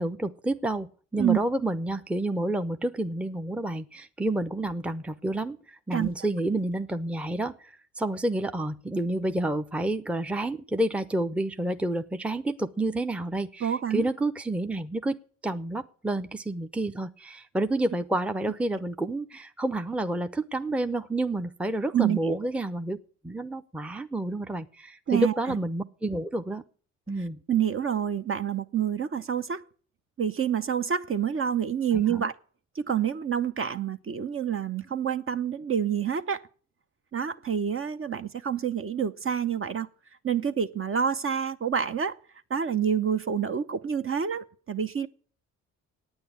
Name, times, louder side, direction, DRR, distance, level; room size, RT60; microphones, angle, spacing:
voice 1, 0.0-15.2 15.4-23.0 23.2-26.6 27.1-27.4 31.9-32.3, right 1 dB, 5° right, 0.7 m, -29 dB
voice 2, 13.6-14.1 21.9-22.3 25.1-25.6 27.5-29.6 30.2-32.3 32.7-36.4 37.1-39.9 40.2-42.1 42.5-45.1, right 8 dB, 35° right, 0.8 m, -27 dB
9.3 x 8.8 x 8.6 m
hypercardioid pair, 45°, 37 cm